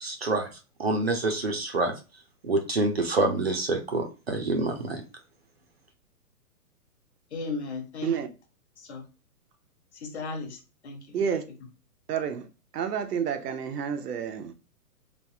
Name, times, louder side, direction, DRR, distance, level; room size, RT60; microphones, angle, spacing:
voice 1, 0.0-0.5 0.8-1.9 2.4-5.0, right 2 dB, 45° right, 0.4 m, -27 dB
voice 2, 7.3-8.1 8.8-9.0 9.9-11.2, left 3 dB, 45° left, 0.8 m, -36 dB
voice 3, 11.1-11.4 12.1-12.5 12.7-14.5, right 7 dB, 85° right, 0.7 m, -29 dB
3.1 x 2.0 x 2.6 m
hypercardioid pair, 175°, 46 cm